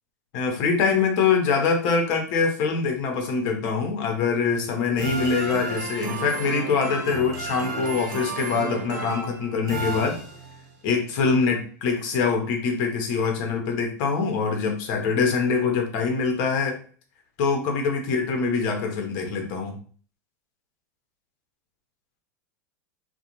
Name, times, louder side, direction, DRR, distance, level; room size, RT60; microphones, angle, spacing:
voice 1, 0.3-10.2 10.8-16.8 17.4-19.8, left 5 dB, 55° left, 3 dB, 0.8 m, -24 dB
sound 1, 5.0-10.7, right 3 dB, 75° right, 0.7 m, -33 dB
2.4 x 2.2 x 2.9 m, 0.43 s
hypercardioid pair, 95°, 10 cm